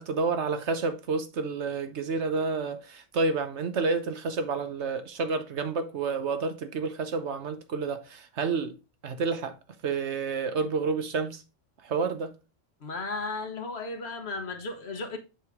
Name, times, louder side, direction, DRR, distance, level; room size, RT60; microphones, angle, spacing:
voice 1, 0.0-8.7 9.0-9.6 9.8-11.4 11.8-12.3, right 4 dB, 65° right, 1.1 m, -29 dB
voice 2, 12.8-15.2, left 3 dB, 55° left, 1.3 m, -35 dB
7.5 x 4.9 x 3.5 m
omnidirectional pair, 1.3 m